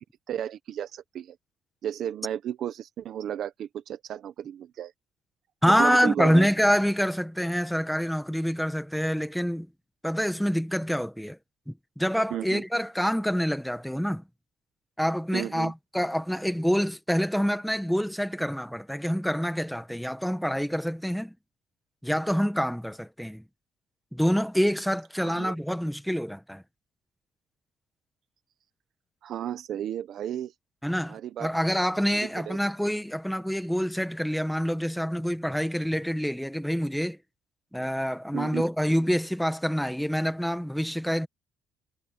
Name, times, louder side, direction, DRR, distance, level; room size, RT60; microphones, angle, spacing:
voice 1, 0.3-1.4 1.8-4.9 5.7-6.5 12.3-12.6 15.3-15.7 25.2-25.6 29.2-30.5 31.1-31.5 32.2-32.6 38.3-38.7, right 10 dB, 50° right, 1.0 m, -33 dB
voice 2, 5.6-9.7 10.0-11.4 11.7-14.2 15.0-21.3 22.0-23.4 24.1-26.6 30.8-37.2 37.7-41.3, equal, ahead, 1.2 m, -26 dB
cardioid pair, 165°, 0 cm